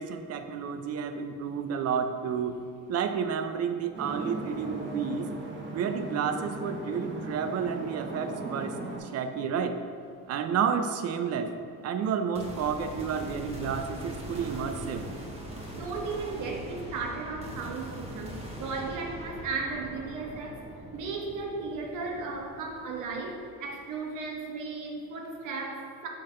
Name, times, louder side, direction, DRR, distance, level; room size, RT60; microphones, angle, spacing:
voice 1, 0.0-2.6 2.9-5.3 5.7-9.8 10.3-11.5 11.8-15.1, right 6 dB, 50° right, 8 dB, 0.5 m, -31 dB
sound 1, 3.9-9.0, right 2 dB, 35° right, 1.0 m, -38 dB
sound 2, 12.3-23.7, right 1 dB, 20° right, 1.3 m, -42 dB
voice 2, 15.7-20.6 20.9-26.1, right 4 dB, 70° right, 1 dB, 1.1 m, -35 dB
5.5 x 3.4 x 5.5 m, 2.3 s
cardioid pair, 95°, 32 cm